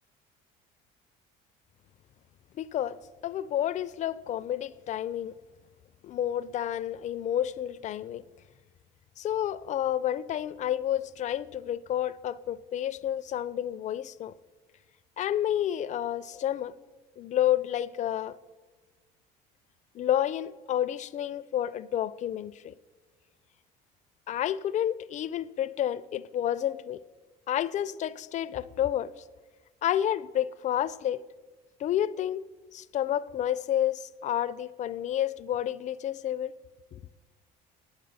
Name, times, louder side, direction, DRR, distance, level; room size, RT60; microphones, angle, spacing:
voice 1, 2.5-3.0 3.2-5.4 6.0-8.2 9.2-14.3 15.2-16.7 17.2-18.4 19.9-22.7 24.3-27.0 27.5-29.1 29.8-31.2 31.8-32.4 32.7-36.5 36.9-37.0, left 11 dB, 40° left, 0.4 m, -30 dB
9.6 x 8.0 x 4.0 m
supercardioid pair, 90°, 19 cm